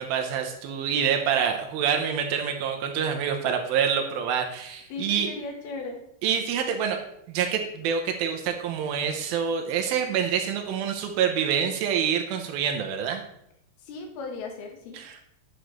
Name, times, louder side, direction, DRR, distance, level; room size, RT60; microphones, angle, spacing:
voice 1, 0.0-5.3 6.2-7.0 7.3-13.2 14.9-15.2, right 7 dB, 80° right, 4 dB, 2.5 m, -26 dB
voice 2, 4.9-6.0 13.9-15.0, left 3 dB, 85° left, 2 dB, 3.2 m, -36 dB
10.0 x 6.3 x 3.1 m, 0.74 s
omnidirectional pair, 4.4 m